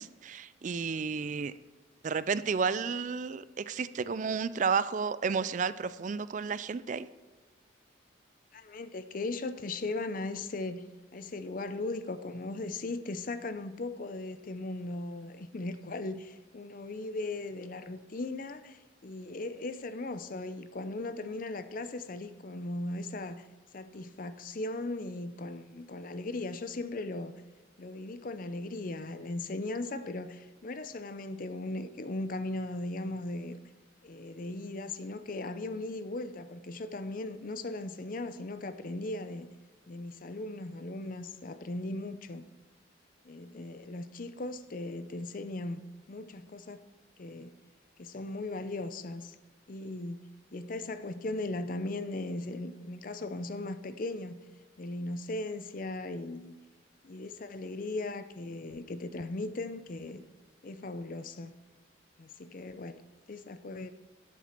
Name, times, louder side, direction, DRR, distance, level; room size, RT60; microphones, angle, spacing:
voice 1, 0.0-1.5 2.0-7.1, right 5 dB, 40° right, 0.3 m, -32 dB
voice 2, 8.5-23.5 23.7-27.3 27.8-33.6 34.0-39.5 39.9-42.4 43.2-45.8 46.1-46.8 47.2-47.5 48.0-49.4 49.7-50.2 50.5-54.4 54.8-56.6 57.0-60.2 60.6-61.5 62.2-63.0 63.3-63.9, left 2 dB, 45° left, 0.5 m, -38 dB
12.0 x 7.4 x 4.4 m
head